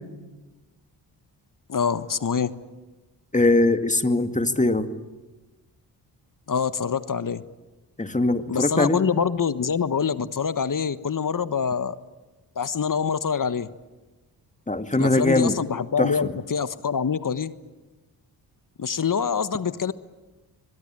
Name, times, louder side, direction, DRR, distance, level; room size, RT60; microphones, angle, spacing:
voice 1, 1.7-2.5 6.5-7.4 8.5-12.0 12.6-13.7 14.9-17.5 18.8-19.9, left 6 dB, 40° left, 14 dB, 1.3 m, -25 dB
voice 2, 3.3-4.9 8.0-9.0 14.7-15.6 16.0-16.1, left 2 dB, 15° left, 8 dB, 2.2 m, -21 dB
24.5 x 22.0 x 8.9 m, 1.2 s
hypercardioid pair, 40°, 49 cm